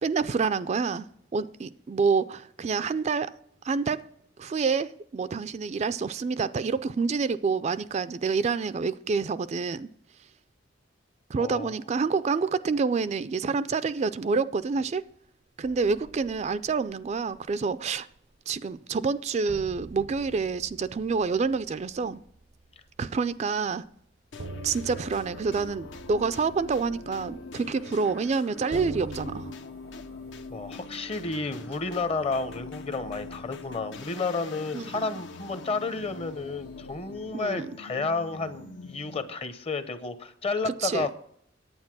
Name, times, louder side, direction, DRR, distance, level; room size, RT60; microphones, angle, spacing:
voice 1, 0.0-3.4 3.6-4.1 4.4-9.9 11.3-15.0 15.6-18.1 18.5-22.2 23.0-23.9 24.6-29.5 34.7-35.0 37.3-37.7 40.6-41.1, right 5 dB, 35° right, 0.3 m, -28 dB
voice 2, 11.4-11.7 30.5-41.1, left 3 dB, 30° left, 0.8 m, -31 dB
sound 1, 15.6-17.5 17.9-18.2 18.6-18.7 19.5-23.3 23.7-23.8 24.4-29.5, right 3 dB, 80° right, 0.7 m, -44 dB
sound 2, 24.3-39.4, left 3 dB, 70° left, 0.8 m, -43 dB
9.6 x 8.8 x 6.0 m
head